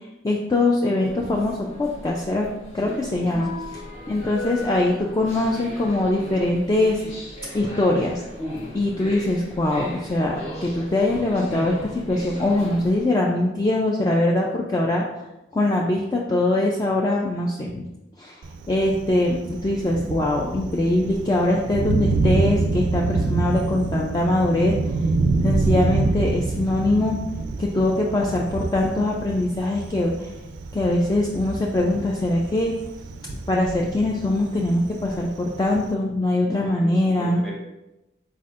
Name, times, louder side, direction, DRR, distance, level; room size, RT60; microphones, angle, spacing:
voice 1, 0.2-2.5 2.7-3.5 4.1-7.0 7.5-8.2 8.7-10.4 10.6-15.0 15.5-17.9 18.2-18.4 18.7-24.7 25.4-27.2 27.6-30.3 30.7-32.7 33.5-37.4, left 1 dB, 20° left, -2 dB, 0.3 m, -22 dB
sound 1, 1.0-13.1, left 1 dB, 40° left, 0.9 m, -38 dB
Thunder, 18.4-35.9, right 3 dB, 90° right, 0.4 m, -27 dB
voice 2, 36.4-37.5, equal, ahead, -3 dB, 0.8 m, -36 dB
4.2 x 4.2 x 2.4 m, 0.97 s
head